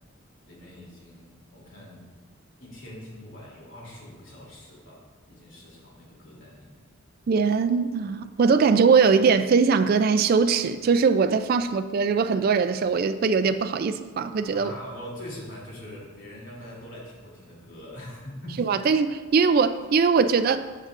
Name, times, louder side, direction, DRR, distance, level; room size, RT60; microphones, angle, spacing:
voice 1, 0.4-2.1 2.6-6.8 14.5-18.6, left 1 dB, 65° left, 2.9 m, -43 dB
voice 2, 7.3-14.7 18.6-20.7, right 5 dB, 45° right, 0.3 m, -21 dB
15.0 x 6.5 x 2.5 m
head